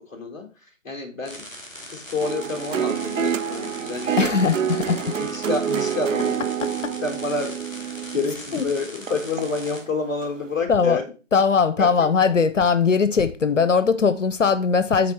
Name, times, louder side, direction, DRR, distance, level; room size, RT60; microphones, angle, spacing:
voice 1, 0.1-1.5 1.9-4.3 4.9-6.4 7.0-11.0 11.8-11.9, left 3 dB, 15° left, 1.1 m, -29 dB
sound 1, 1.2-9.8, left 1 dB, 5° right, 1.6 m, -40 dB
sound 2, 2.2-9.7 10.2-10.3, right 8 dB, 75° right, 0.5 m, -27 dB
voice 2, 4.2-5.1 6.6-6.7 8.3-8.7 10.7-11.0 11.3-15.1, left 5 dB, 70° left, 0.7 m, -20 dB
8.4 x 4.2 x 4.2 m
figure-of-eight pair, 155°, 39 cm